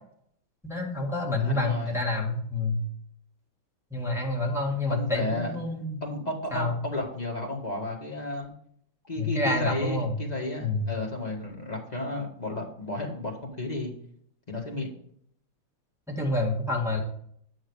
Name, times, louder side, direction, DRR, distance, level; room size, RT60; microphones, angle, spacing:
voice 1, 0.6-2.8 3.9-6.0 6.5-6.8 9.2-10.2 10.6-10.9 16.1-17.0, left 2 dB, ahead, -2 dB, 1.7 m, -28 dB
voice 2, 1.4-2.0 4.0-4.2 4.9-5.6 6.0-8.5 9.1-13.9 14.5-14.9, left 2 dB, 20° left, -1 dB, 1.7 m, -33 dB
9.7 x 6.3 x 4.8 m, 0.66 s
omnidirectional pair, 2.3 m